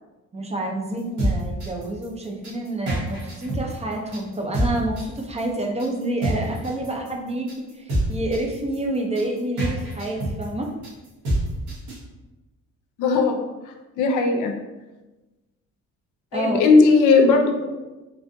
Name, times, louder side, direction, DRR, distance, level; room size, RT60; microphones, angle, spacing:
voice 1, 0.3-10.7 16.3-16.6, right 1 dB, 20° right, 2 dB, 0.5 m, -28 dB
sound 1, 1.0-12.0, right 1 dB, 75° right, 1.3 m, -27 dB
voice 2, 13.0-13.4 14.0-14.5 16.3-17.8, left 4 dB, 90° left, 4 dB, 0.5 m, -17 dB
3.3 x 2.5 x 2.5 m, 1.1 s
cardioid pair, 90°, 30 cm